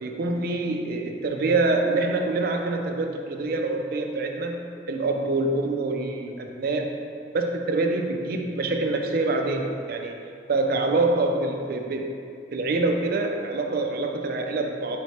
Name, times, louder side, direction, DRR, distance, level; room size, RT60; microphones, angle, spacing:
voice 1, 0.0-7.0 7.3-10.2 10.5-12.1 12.5-15.0, right 2 dB, 55° right, 3 dB, 0.4 m, -25 dB
3.6 x 3.3 x 4.1 m, 2.3 s
head